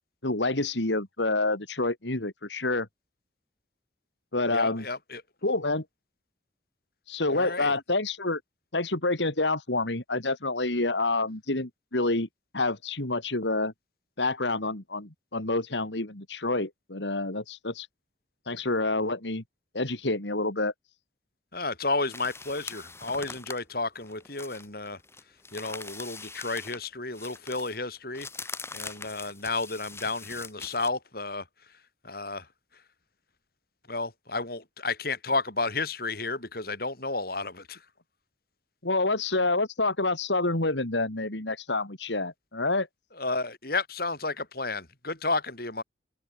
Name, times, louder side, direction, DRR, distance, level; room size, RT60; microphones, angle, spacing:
voice 1, 0.2-2.9 4.3-4.8 5.4-5.8 7.1-8.4 8.7-12.3 12.5-13.7 14.2-17.9 18.5-19.4 19.7-20.7 38.8-42.9, left 2 dB, 75° left, 3.1 m, -28 dB
voice 2, 4.5-5.2 7.3-7.7 21.5-25.0 25.5-31.7 32.0-32.5 32.7-32.8 33.9-37.8 43.2-45.8, left 3 dB, 55° left, 6.8 m, -32 dB
sound 1, 22.1-26.9 27.1-30.9, left 4 dB, 15° left, 3.6 m, -42 dB
open air
head